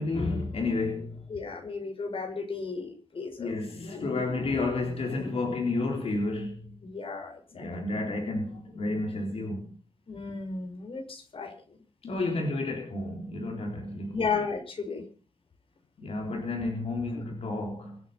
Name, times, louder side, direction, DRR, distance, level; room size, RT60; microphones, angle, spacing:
voice 1, 0.0-1.3 3.4-6.8 7.5-9.8 12.0-14.3 16.0-18.0, left 2 dB, 90° left, 4.1 m, -31 dB
voice 2, 1.3-3.6 3.9-4.0 6.8-7.9 10.1-11.5 14.1-15.0, left 5 dB, 65° left, 5.7 m, -34 dB
25.5 x 9.5 x 5.8 m
wide cardioid pair, 130°, 10 cm